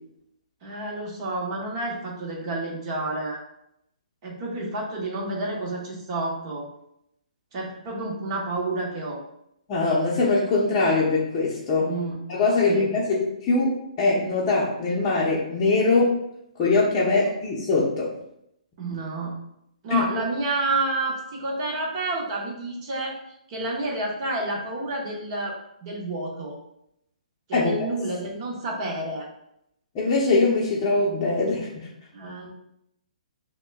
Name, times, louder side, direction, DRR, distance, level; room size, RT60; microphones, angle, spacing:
voice 1, 0.6-3.4 4.2-6.7 7.5-9.2 11.8-12.2 12.6-13.0 18.8-19.4 19.8-23.2 23.5-26.6 27.5-29.3 32.1-32.5, right 2 dB, 35° right, -1 dB, 1.1 m, -29 dB
voice 2, 9.7-11.9 12.3-16.2 16.6-18.1 19.9-20.0 27.5-27.9 29.9-31.9, left 3 dB, 25° left, -7 dB, 0.7 m, -22 dB
6.1 x 2.2 x 2.3 m, 0.76 s
hypercardioid pair, 155°, 4 cm